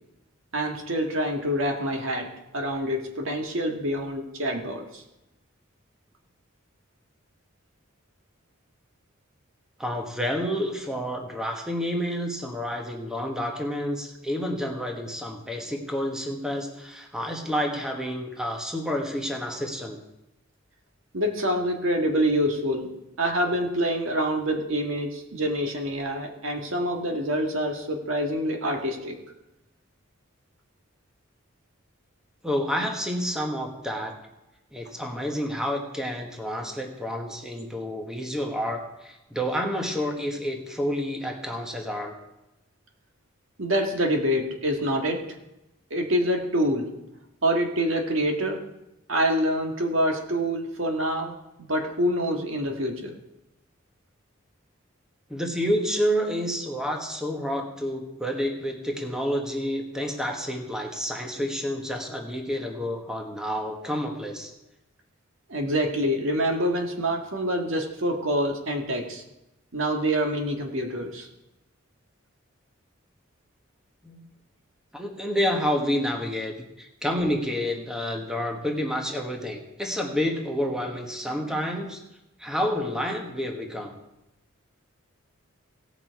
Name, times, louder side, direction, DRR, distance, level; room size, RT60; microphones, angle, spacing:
voice 1, 0.5-5.0 21.1-29.1 43.6-45.2 45.9-46.9 47.4-48.6 49.1-51.3 51.6-53.1 65.5-69.2 69.7-71.3, equal, 75° right, 3 dB, 1.7 m, -26 dB
voice 2, 9.8-20.0 32.4-34.2 34.7-42.1 55.3-64.5 74.0-74.2 74.9-82.0 82.4-83.9, equal, 5° right, 2 dB, 1.2 m, -29 dB
17.5 x 6.0 x 4.7 m, 0.92 s
head